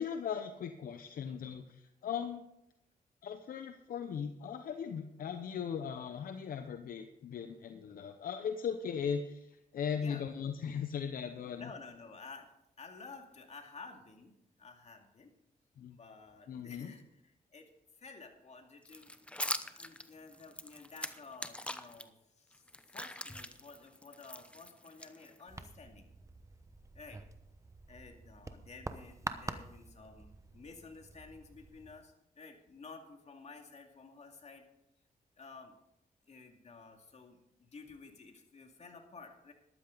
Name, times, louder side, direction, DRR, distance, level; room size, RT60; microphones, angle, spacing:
voice 1, 0.0-2.4 3.2-11.7 15.8-16.0 16.5-16.9, left 7 dB, 75° left, 8 dB, 0.8 m, -38 dB
voice 2, 9.9-10.3 11.6-12.5 12.8-14.3 14.6-15.3 15.9-17.7 18.0-22.7 22.9-26.1 26.9-27.2 27.9-34.7 35.4-35.7 36.3-39.5, left 4 dB, 50° left, 4 dB, 2.3 m, -52 dB
sound 1, 18.9-22.0 22.5-25.6, left 1 dB, 10° left, 0.9 m, -42 dB
sound 2, 25.5-32.0, right 2 dB, 20° right, 1.0 m, -47 dB
13.5 x 12.0 x 3.9 m, 0.82 s
cardioid pair, 75°, 15 cm